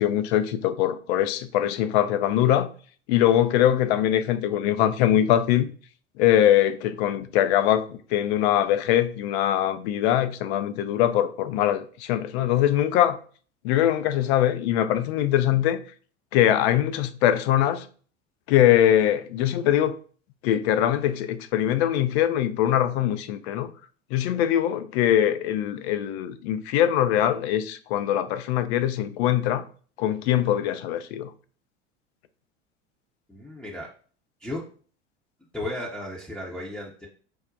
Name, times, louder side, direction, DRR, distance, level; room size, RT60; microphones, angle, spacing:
voice 1, 0.0-2.7 3.1-5.7 6.2-13.2 13.6-15.8 16.3-17.9 18.5-19.9 20.4-23.7 24.1-29.6 30.0-31.3, left 11 dB, 60° left, 0.5 m, -22 dB
voice 2, 33.3-33.9 34.4-34.6 35.5-37.1, left 1 dB, 5° left, 0.6 m, -34 dB
4.8 x 2.1 x 2.6 m
hypercardioid pair, 80°, 38 cm